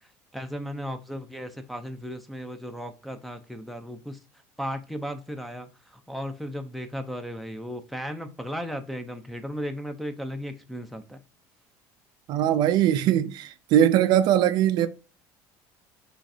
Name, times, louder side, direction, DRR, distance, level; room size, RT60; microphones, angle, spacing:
voice 1, 0.3-4.2 4.6-11.2, equal, ahead, 0.6 m, -35 dB
voice 2, 12.3-14.9, right 11 dB, 60° right, 0.5 m, -21 dB
6.2 x 3.2 x 2.6 m
cardioid pair, 140°, 8 cm